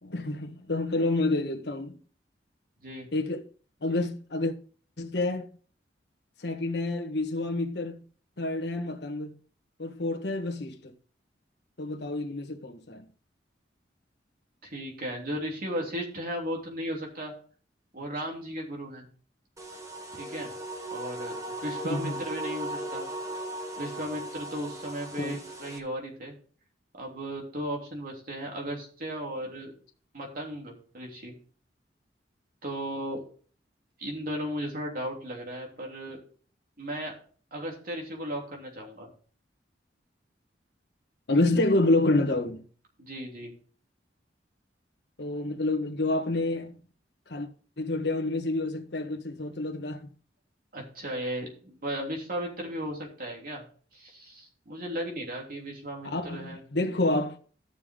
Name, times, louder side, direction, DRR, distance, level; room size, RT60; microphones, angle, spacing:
voice 1, 0.0-2.0 3.1-3.4 3.8-4.5 5.0-5.5 6.4-8.0 8.4-9.4 9.8-10.9 11.8-13.1 21.9-22.2 25.2-25.4 41.3-42.6 45.2-46.8 47.3-47.5 47.8-50.1 56.0-57.4, left 2 dB, 65° left, 1.5 m, -28 dB
voice 2, 14.6-17.3 17.9-19.0 20.1-20.5 20.9-21.4 21.6-23.0 23.8-26.3 27.0-29.7 30.1-31.3 32.6-33.2 34.0-36.2 36.8-37.1 37.5-39.1 43.0-43.5 50.7-53.6 53.9-56.6, equal, 55° right, 3.3 m, -35 dB
sound 1, 19.6-25.8, right 1 dB, 20° right, 1.3 m, -37 dB
13.5 x 6.8 x 3.8 m
head